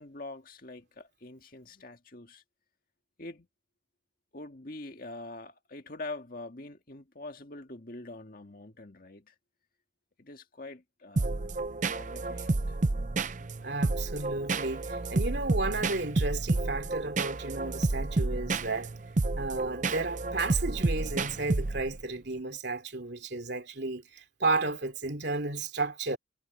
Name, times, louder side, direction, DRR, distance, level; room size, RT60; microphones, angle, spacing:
voice 1, 0.0-2.4 3.2-3.5 4.3-9.3 10.2-11.5 11.8-12.8, left 2 dB, 45° left, 1.9 m, -44 dB
sound 1, 11.2-22.0, right 3 dB, 40° right, 0.6 m, -30 dB
voice 2, 13.6-18.9 19.4-26.2, right 3 dB, 55° right, 3.1 m, -33 dB
head